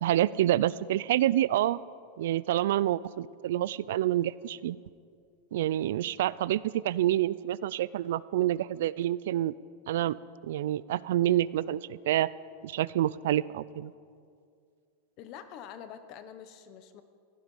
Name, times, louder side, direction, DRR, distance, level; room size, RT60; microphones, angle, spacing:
voice 1, 0.0-1.8 2.2-4.8 5.5-9.5 9.9-10.2 10.4-12.3 12.6-13.9, right 13 dB, 70° right, 19 dB, 0.3 m, -27 dB
voice 2, 15.2-17.0, left 9 dB, 40° left, 11 dB, 0.9 m, -46 dB
16.5 x 12.0 x 5.4 m, 2.3 s
supercardioid pair, 165°, 0 cm